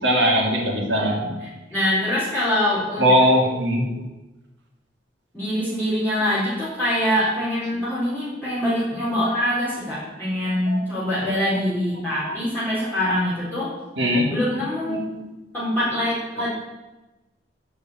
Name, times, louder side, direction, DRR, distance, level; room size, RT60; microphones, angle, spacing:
voice 1, 0.0-1.3 3.0-3.8 10.7-10.8 12.3-12.4 14.0-14.3 14.9-15.3 16.4-16.5, equal, 75° right, -2 dB, 3.0 m, -20 dB
voice 2, 1.7-3.1 5.3-13.7 14.3-15.1 15.5-16.5, left 1 dB, 10° left, -11 dB, 4.3 m, -24 dB
11.5 x 5.3 x 8.8 m, 1.1 s
head